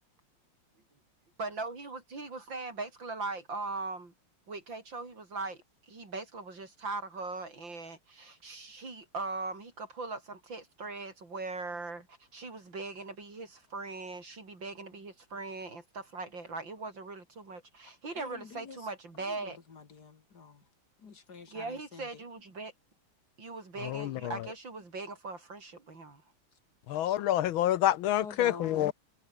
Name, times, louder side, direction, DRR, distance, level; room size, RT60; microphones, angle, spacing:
voice 1, 1.4-4.1 4.5-5.6 5.9-19.6 21.5-22.7 23.4-26.2, right 3 dB, 60° right, 5.5 m, -40 dB
voice 2, 18.1-18.9 19.2-20.6 21.0-22.2 28.2-28.9, left 5 dB, 50° left, 2.4 m, -46 dB
voice 3, 23.8-24.5 26.9-28.9, left 12 dB, 75° left, 1.5 m, -28 dB
omnidirectional pair, 2.4 m